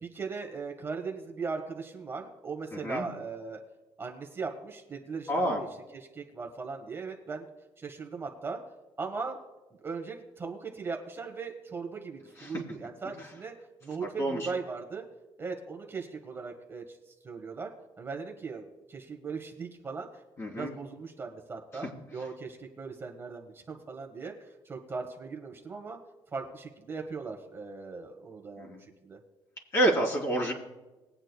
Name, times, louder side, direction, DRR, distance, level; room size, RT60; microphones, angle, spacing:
voice 1, 0.0-3.6 4.0-5.7 5.9-7.4 7.8-8.6 9.0-9.4 9.8-13.5 13.8-15.0 15.4-17.7 18.0-20.1 20.5-26.0 26.3-29.2, right 4 dB, 25° right, 1 dB, 1.4 m, -38 dB
voice 2, 2.7-3.0 5.3-5.6 12.4-12.5 14.2-14.5 20.4-20.7 28.6-28.8 29.7-30.5, right 1 dB, 30° left, -2 dB, 3.2 m, -28 dB
21.0 x 8.8 x 2.2 m, 1.1 s
cardioid pair, 125°, 9 cm